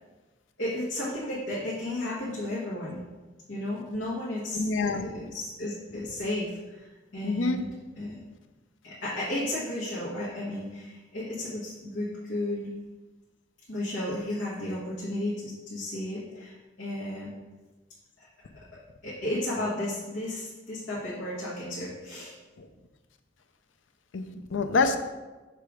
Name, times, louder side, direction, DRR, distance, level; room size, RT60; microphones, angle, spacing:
voice 1, 0.6-3.1 3.5-7.7 7.9-8.2 8.8-12.7 13.7-17.3 18.2-18.3 18.5-18.6 19.0-22.3, left 1 dB, 70° left, -9 dB, 1.6 m, -33 dB
voice 2, 4.5-5.2 7.2-7.6 22.6-22.7 24.1-25.0, left 4 dB, 85° left, 8 dB, 0.6 m, -27 dB
6.8 x 3.4 x 4.8 m, 1.2 s
head